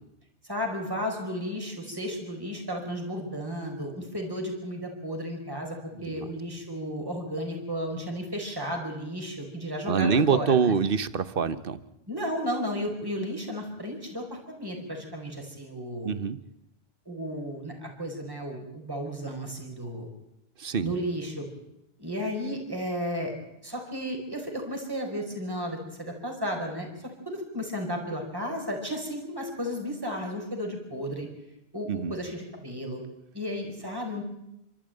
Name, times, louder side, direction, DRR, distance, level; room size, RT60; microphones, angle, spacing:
voice 1, 0.4-10.8 12.1-16.1 17.1-20.1 20.8-21.4 22.0-23.3 23.6-26.9 27.2-31.3 31.7-33.0 33.3-34.2, equal, 20° right, 1 dB, 4.9 m, -33 dB
voice 2, 6.0-6.3 9.8-11.8 16.0-16.4 20.6-20.9 31.9-32.1, right 6 dB, 60° right, 15 dB, 1.2 m, -25 dB
29.5 x 13.0 x 9.0 m, 0.86 s
omnidirectional pair, 1.1 m